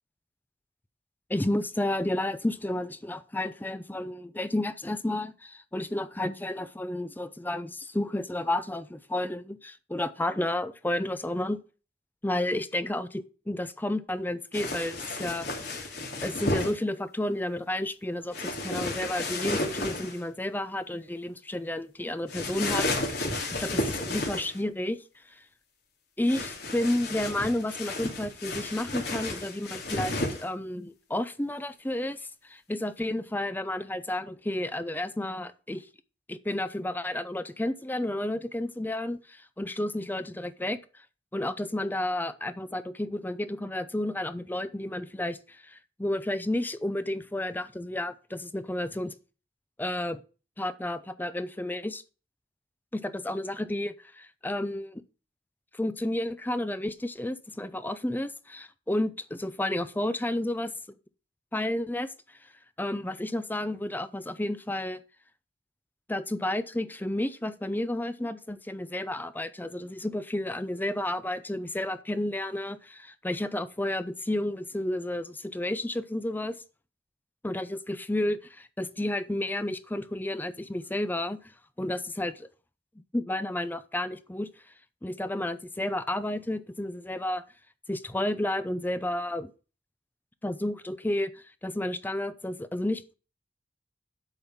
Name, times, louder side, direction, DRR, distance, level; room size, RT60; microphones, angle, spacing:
voice 1, 1.3-11.6 12.2-15.8 16.2-23.1 23.6-25.0 25.3-25.4 26.2-35.9 36.3-40.8 41.3-49.1 49.8-50.2 50.6-52.0 52.9-55.0 55.7-60.7 61.5-62.1 62.8-65.0 66.1-76.5 77.4-82.5 83.0-84.5 85.0-87.4 87.9-89.5 90.4-93.1, left 1 dB, 10° left, 0.6 m, -31 dB
sound 1, 14.5-16.7 18.3-20.2 22.3-24.6 26.3-30.4, left 2 dB, 70° left, 2.7 m, -32 dB
8.1 x 5.6 x 7.2 m
head